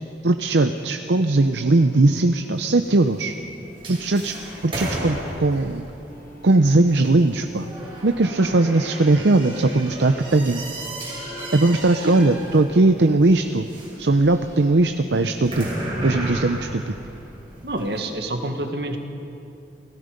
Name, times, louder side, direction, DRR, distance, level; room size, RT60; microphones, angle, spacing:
voice 1, 0.2-3.3 3.9-5.9 6.4-7.7 8.0-10.6 11.5-13.7 14.0-15.7 16.0-16.9, right 2 dB, 85° right, 7 dB, 0.7 m, -19 dB
sound 1, 1.5-2.7 3.6-5.1 6.1-7.7 8.4-9.8 11.2-11.6 12.3-12.6 13.2-13.6 14.2-14.7 15.1-15.8, left 1 dB, 15° left, 2.9 m, -44 dB
sound 2, 2.5-18.0, right 1 dB, 30° right, 5.6 m, -35 dB
voice 2, 17.6-19.0, right 1 dB, 70° right, 5 dB, 1.9 m, -27 dB
29.0 x 18.5 x 5.3 m, 2.8 s
head